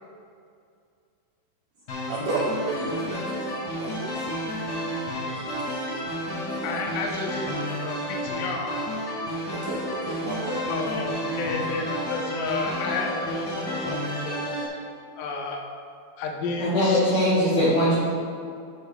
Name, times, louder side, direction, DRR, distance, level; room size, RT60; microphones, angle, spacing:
sound 1, 1.9-14.7, equal, 40° left, 1.6 m, -31 dB
voice 1, 2.1-4.4 5.3-6.0 6.5-6.8 9.5-10.7 11.6-11.9, right 2 dB, 80° right, -5 dB, 1.8 m, -33 dB
voice 2, 6.6-8.8 10.7-14.4 15.2-15.6 16.2-17.6, left 3 dB, 75° left, 0 dB, 2.2 m, -32 dB
voice 3, 16.6-17.9, left 1 dB, 60° left, -8 dB, 2.5 m, -21 dB
15.5 x 6.3 x 2.2 m, 2.4 s
omnidirectional pair, 4.6 m